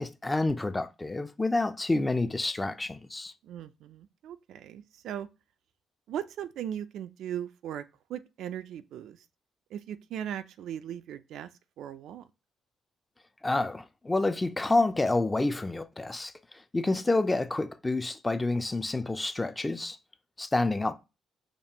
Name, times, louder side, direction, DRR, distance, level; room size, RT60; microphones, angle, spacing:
voice 1, 0.0-3.3 13.4-16.3 16.7-20.0 20.4-20.9, left 2 dB, 15° left, 0.4 m, -28 dB
voice 2, 3.4-5.3 6.1-7.8 8.1-9.3 9.7-11.5 11.8-12.3, right 10 dB, 80° right, 0.3 m, -38 dB
5.2 x 2.4 x 2.8 m
cardioid pair, 90°, 0 cm